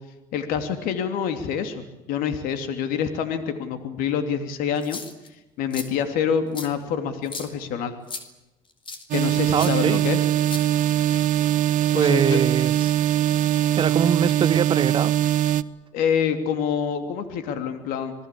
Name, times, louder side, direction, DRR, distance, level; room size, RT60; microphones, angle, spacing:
voice 1, 0.3-5.0 5.6-7.9 9.1-10.2 11.9-12.4 15.9-18.1, left 7 dB, 70° left, 3.1 m, -26 dB
sound 1, 4.8-5.3 5.7-5.9 6.5-6.7 7.2-7.5 8.1-8.2 8.9-9.0 9.6-9.7 10.4-11.0, left 4 dB, 35° left, 4.6 m, -35 dB
sound 2, 9.1-15.6, right 12 dB, 60° right, 1.2 m, -21 dB
voice 2, 9.5-10.0 11.9-12.9 13.7-15.1, right 7 dB, 35° right, 1.0 m, -23 dB
27.0 x 20.5 x 8.6 m
supercardioid pair, 90°, 15 cm